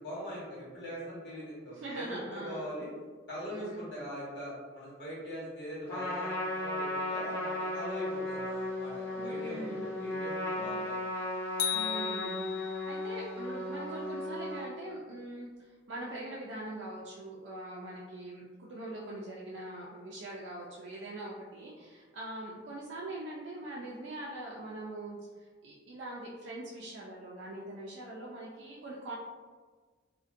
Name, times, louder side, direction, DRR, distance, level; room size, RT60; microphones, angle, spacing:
voice 1, 0.0-2.9 3.3-11.0, equal, 65° left, -7 dB, 1.0 m, -42 dB
voice 2, 1.7-2.7 3.5-3.8 9.2-10.2 10.6-10.8 11.7-29.1, right 1 dB, 75° right, -5 dB, 0.4 m, -42 dB
Trumpet, 5.9-14.7, left 1 dB, 10° left, 0.6 m, -36 dB
sound 1, 11.6-13.0, left 11 dB, 90° left, 0.4 m, -34 dB
2.5 x 2.1 x 2.5 m, 1.4 s
head